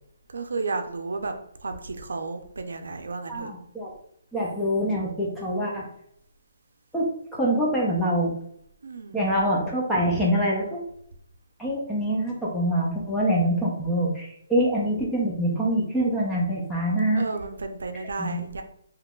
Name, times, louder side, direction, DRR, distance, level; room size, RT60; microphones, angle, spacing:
voice 1, 0.3-1.3 1.6-3.5 8.8-9.3 17.1-18.6, right 3 dB, 80° right, 6 dB, 0.5 m, -32 dB
voice 2, 3.3-3.9 4.3-5.9 6.9-8.3 9.1-10.8 11.6-17.2 18.2-18.4, equal, 5° left, -5 dB, 0.4 m, -25 dB
3.7 x 2.8 x 2.3 m, 0.69 s
hypercardioid pair, 180°, 0 cm